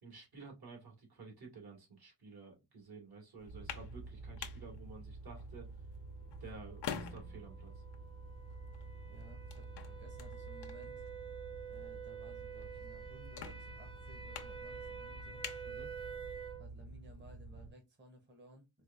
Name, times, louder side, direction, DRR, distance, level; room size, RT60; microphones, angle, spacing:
voice 1, 0.0-5.7 6.4-7.8 15.6-15.9, right 4 dB, 60° right, 1.8 m, -52 dB
sound 1, 3.4-16.5, left 7 dB, 70° left, 0.7 m, -50 dB
sound 2, 3.5-17.7, right 3 dB, 45° right, 1.2 m, -50 dB
sound 3, 6.7-16.7, right 7 dB, 15° left, 0.4 m, -49 dB
voice 2, 9.1-11.1 11.6-15.4 16.6-18.8, equal, 25° right, 0.9 m, -58 dB
4.5 x 2.4 x 2.4 m
wide cardioid pair, 125°, 41 cm